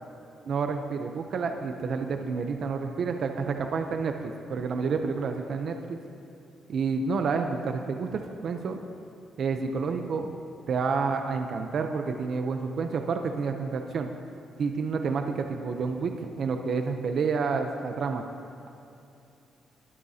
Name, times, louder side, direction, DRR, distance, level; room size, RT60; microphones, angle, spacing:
voice 1, 0.5-6.0 6.7-8.8 9.4-10.3 10.7-14.1 14.6-18.2, right 5 dB, 45° right, 5 dB, 0.6 m, -29 dB
21.0 x 12.5 x 2.8 m, 2.8 s
cardioid pair, 180°, 0 cm